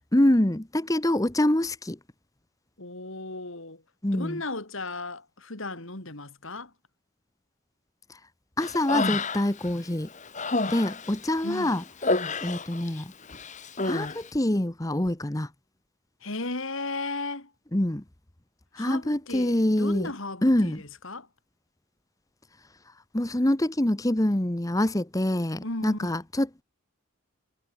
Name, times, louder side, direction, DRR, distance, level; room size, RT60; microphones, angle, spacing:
voice 1, 0.1-2.0 4.0-4.4 8.1-8.2 8.6-10.1 10.7-11.8 12.4-13.1 13.8-15.5 17.7-18.0 18.7-20.1 20.4-20.8 23.1-26.6, left 1 dB, 15° left, 0.9 m, -25 dB
voice 2, 2.8-3.8 4.1-6.7 11.4-11.7 16.2-17.5 18.8-21.3 25.6-26.2, left 2 dB, 65° left, 3.5 m, -35 dB
Human voice, 8.6-9.7 10.1-13.0 13.3-14.2, left 3 dB, 35° left, 2.1 m, -29 dB
head